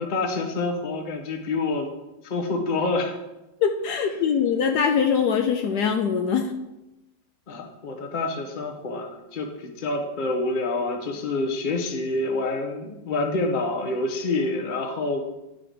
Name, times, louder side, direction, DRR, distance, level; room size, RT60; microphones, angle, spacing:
voice 1, 0.0-1.9 2.2-3.2 7.5-15.3, left 2 dB, 35° left, 3 dB, 0.8 m, -27 dB
voice 2, 3.6-6.5, left 7 dB, 75° left, 4 dB, 1.1 m, -22 dB
10.5 x 3.8 x 5.0 m, 0.97 s
omnidirectional pair, 2.0 m